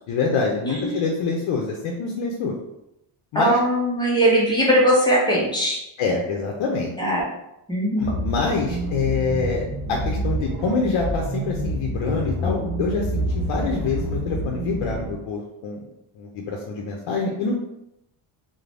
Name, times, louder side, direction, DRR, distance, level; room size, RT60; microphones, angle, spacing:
voice 1, 0.1-2.6 3.3-3.6 6.0-6.9 8.0-15.8 16.2-17.5, left 4 dB, 70° left, 0 dB, 0.5 m, -26 dB
voice 2, 0.6-1.0 3.3-5.8 7.0-7.2 7.7-8.1, equal, 10° left, -5 dB, 0.4 m, -20 dB
sound 1, 8.0-15.1, right 1 dB, 50° right, 0.6 m, -28 dB
2.5 x 2.0 x 3.2 m, 0.84 s
wide cardioid pair, 170°, 50 cm